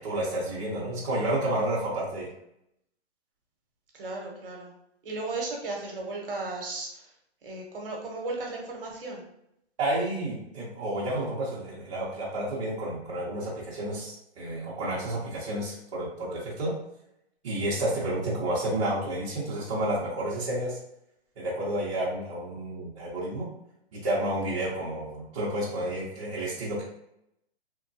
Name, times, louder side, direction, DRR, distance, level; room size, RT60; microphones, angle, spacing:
voice 1, 0.0-2.3 9.8-16.7 17.4-20.8 21.4-23.5 23.9-26.8, right 1 dB, 30° right, -7 dB, 0.6 m, -30 dB
voice 2, 3.9-4.7 5.0-7.1 7.4-9.2, right 3 dB, 55° right, 0 dB, 0.9 m, -35 dB
2.9 x 2.2 x 2.6 m, 0.77 s
hypercardioid pair, 155°, 32 cm